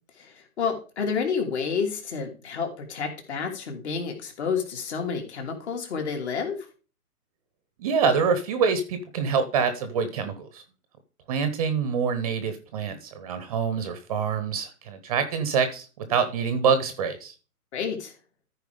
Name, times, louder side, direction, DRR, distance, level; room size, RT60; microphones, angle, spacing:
voice 1, 0.2-6.6 17.7-18.1, left 6 dB, 45° left, 3 dB, 3.2 m, -30 dB
voice 2, 7.8-10.6 11.3-17.3, right 6 dB, 25° right, 9 dB, 0.9 m, -26 dB
14.0 x 4.7 x 5.1 m, 0.35 s
figure-of-eight pair, 140°, 46 cm